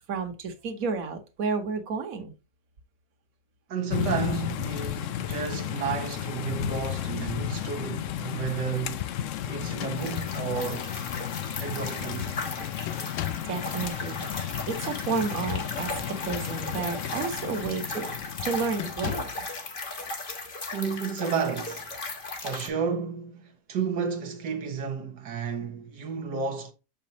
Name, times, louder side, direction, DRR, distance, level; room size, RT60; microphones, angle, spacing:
voice 1, 0.1-2.3 13.3-18.1 18.4-19.3, right 5 dB, 60° right, 1.6 m, -31 dB
voice 2, 3.7-9.1 9.5-10.9 11.6-12.4 20.7-21.9 22.4-26.7, right 6 dB, 80° right, 1.6 m, -32 dB
sound 1, 3.9-19.5, left 11 dB, 70° left, 0.8 m, -34 dB
sound 2, 9.6-10.5 11.4-11.5 11.8-12.2 12.9-13.6 16.0-16.9 17.4-17.7 18.8-19.5, left 14 dB, 85° left, 1.2 m, -38 dB
sound 3, 10.0-22.7, left 2 dB, 35° left, 1.4 m, -37 dB
6.8 x 5.2 x 2.8 m
omnidirectional pair, 1.8 m